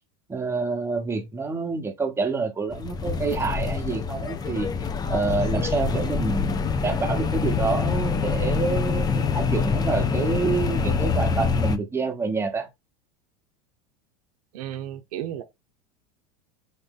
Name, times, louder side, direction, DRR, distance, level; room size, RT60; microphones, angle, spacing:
voice 1, 0.3-4.7 5.1-12.7, right 4 dB, 15° right, 1.1 m, -27 dB
sound 1, 2.7-11.8, left 5 dB, 20° left, 0.4 m, -25 dB
voice 2, 14.5-15.4, right 11 dB, 80° right, 0.7 m, -33 dB
4.0 x 2.6 x 3.7 m
supercardioid pair, 115°, 19 cm